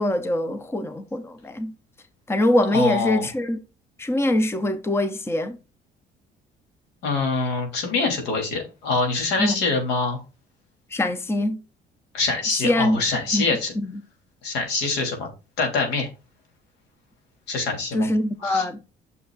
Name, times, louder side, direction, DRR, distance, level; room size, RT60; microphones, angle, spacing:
voice 1, 0.0-1.7 2.3-3.6 4.0-5.6 9.4-9.6 10.9-11.6 12.6-13.0 13.3-13.5 13.8-13.9 17.9-18.8, left 1 dB, 15° left, 0.8 m, -23 dB
voice 2, 2.7-3.3 7.0-10.2 12.1-13.7 14.4-15.3 15.6-16.1 17.5-18.1 18.4-18.6, left 3 dB, 85° left, 3.1 m, -25 dB
9.3 x 6.6 x 2.4 m
cardioid pair, 110°, 17 cm